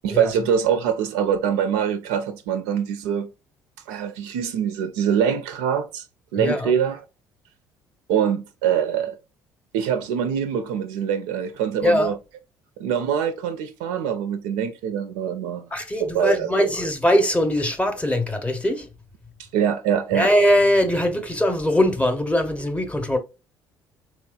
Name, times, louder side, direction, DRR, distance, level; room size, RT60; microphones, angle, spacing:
voice 1, 0.0-3.3 3.9-6.0 6.3-7.0 8.1-9.2 9.7-12.2 12.8-15.7 16.0-16.7 19.5-20.3, right 8 dB, 60° right, 0.4 m, -24 dB
voice 2, 6.3-6.7 11.8-12.1 15.7-18.9 20.1-23.2, left 1 dB, 10° left, 0.7 m, -21 dB
3.6 x 3.0 x 2.2 m
figure-of-eight pair, 50°, 11 cm